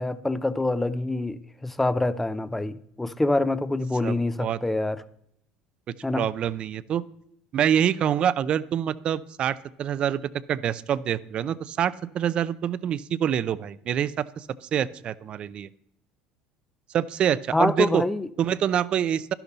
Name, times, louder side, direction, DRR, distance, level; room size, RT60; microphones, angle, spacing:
voice 1, 0.0-5.0 6.0-6.3 17.5-18.3, left 2 dB, 5° left, 0.6 m, -26 dB
voice 2, 4.0-4.6 6.1-7.0 7.5-15.7 16.9-18.0 18.4-19.3, right 9 dB, 40° right, 0.6 m, -26 dB
12.0 x 11.5 x 4.0 m
cardioid pair, 135°, 3 cm